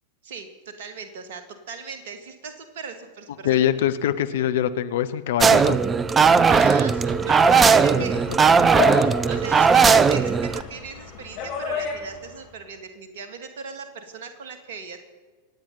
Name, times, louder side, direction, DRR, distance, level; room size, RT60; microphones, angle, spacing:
voice 1, 0.2-3.6 6.5-8.2 8.9-15.0, right 5 dB, 55° right, 8 dB, 1.9 m, -38 dB
voice 2, 3.4-5.8, left 10 dB, 55° left, 11 dB, 0.8 m, -23 dB
sound 1, 5.4-10.6, right 5 dB, 20° right, 0.5 m, -17 dB
sound 2, 6.1-12.5, left 5 dB, 40° left, 3.3 m, -32 dB
26.0 x 8.9 x 5.5 m, 1.4 s
figure-of-eight pair, 90°, 0 cm